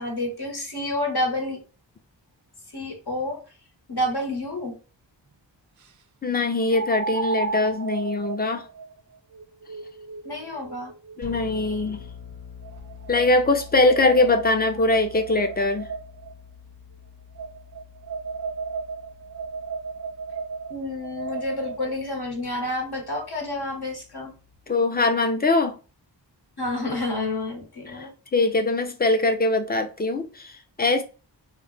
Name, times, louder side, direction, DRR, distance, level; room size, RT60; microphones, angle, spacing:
voice 1, 0.0-1.6 2.7-3.4 3.9-4.8 10.2-10.9 20.7-24.3 26.6-28.1, left 1 dB, 60° left, 1.1 m, -29 dB
sound 1, 4.1-4.2 6.7-11.9 12.6-16.3 17.4-21.9, right 4 dB, 45° right, 0.4 m, -34 dB
voice 2, 6.2-8.6 11.2-12.0 13.1-15.9 24.7-25.8 27.9-31.0, left 2 dB, 20° left, 0.5 m, -22 dB
sound 2, 11.2-24.6, left 6 dB, 80° left, 1.1 m, -46 dB
2.3 x 2.1 x 3.8 m
wide cardioid pair, 40°, 44 cm